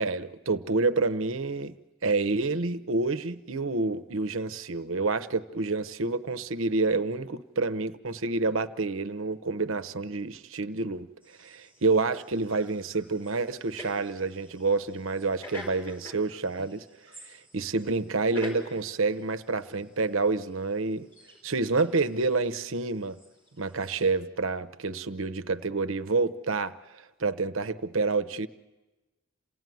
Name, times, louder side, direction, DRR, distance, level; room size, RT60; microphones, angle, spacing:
voice 1, 0.0-1.7 2.0-11.1 11.4-16.8 17.2-21.1 21.4-23.2 23.6-28.5, right 3 dB, 65° right, 12 dB, 0.9 m, -28 dB
sound 1, 11.2-24.1, left 1 dB, 10° left, 5.1 m, -48 dB
28.0 x 17.0 x 9.3 m, 1.1 s
head